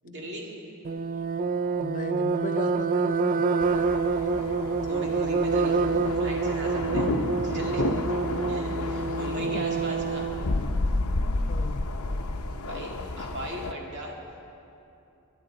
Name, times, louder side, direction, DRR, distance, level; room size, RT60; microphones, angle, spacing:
voice 1, 0.0-0.5 4.9-5.8 6.2-7.1 7.4-7.9 8.5-10.3 12.6-14.2, equal, 55° right, -1 dB, 2.2 m, -38 dB
sound 1, 0.8-10.5, right 4 dB, 40° right, 0.3 m, -27 dB
voice 2, 1.8-3.5 9.0-9.8 11.5-11.9, left 2 dB, 40° left, 8 dB, 0.6 m, -37 dB
sound 2, 3.6-13.7, left 2 dB, 80° left, 0.7 m, -31 dB
21.0 x 11.0 x 3.9 m, 2.8 s
head